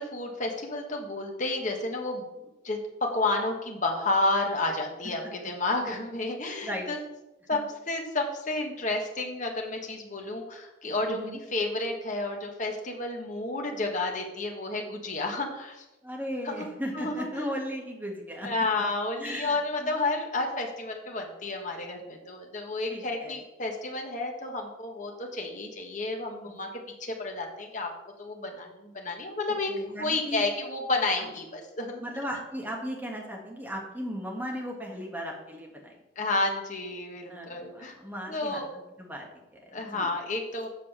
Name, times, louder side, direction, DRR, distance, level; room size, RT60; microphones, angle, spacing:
voice 1, 0.0-2.3 2.6-7.0 7.5-15.8 16.4-16.6 16.9-17.4 18.4-26.7 27.0-27.9 28.2-29.7 30.0-32.0 36.1-37.9 38.3-38.7 39.7-40.7, left 2 dB, 40° left, 1 dB, 1.5 m, -31 dB
voice 2, 11.1-11.4 16.0-18.5 19.2-19.9 22.9-23.3 29.7-30.4 31.2-31.3 32.0-36.0 37.3-38.6 39.0-40.1, equal, 10° right, -1 dB, 1.7 m, -36 dB
7.7 x 5.4 x 6.8 m, 0.99 s
head